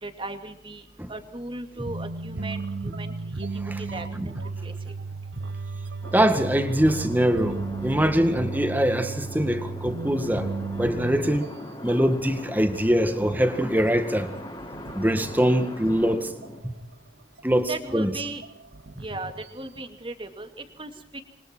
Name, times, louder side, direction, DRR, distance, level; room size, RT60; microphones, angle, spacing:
voice 1, 0.0-4.9 17.6-18.4 19.0-21.2, right 2 dB, 30° right, 7 dB, 2.4 m, -37 dB
sound 1, 1.8-12.1 12.3-12.6 12.9-13.0 13.4-16.1 16.4-16.9 17.4-17.5 17.9-19.8, right 3 dB, 80° right, 1.0 m, -35 dB
sound 2, 6.0-16.6, equal, 25° left, 7.5 m, -41 dB
voice 2, 6.1-10.5 10.8-11.5 11.8-14.3 15.0-16.3 17.4-18.1, equal, 10° right, 8 dB, 1.9 m, -23 dB
28.0 x 24.5 x 4.5 m, 0.68 s
head